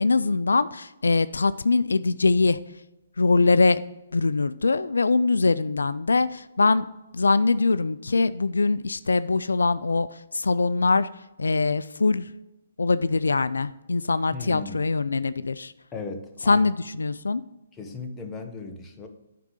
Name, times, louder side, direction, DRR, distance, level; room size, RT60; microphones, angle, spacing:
voice 1, 0.0-2.6 3.2-3.8 4.1-6.9 7.1-10.1 10.3-11.1 11.4-12.3 12.8-15.7 16.5-17.4, left 3 dB, 90° left, 15 dB, 0.3 m, -22 dB
voice 2, 14.3-14.8 15.9-16.7 17.7-19.1, left 4 dB, 15° left, 3 dB, 1.0 m, -36 dB
9.3 x 3.8 x 6.5 m, 0.97 s
hypercardioid pair, 145°, 0 cm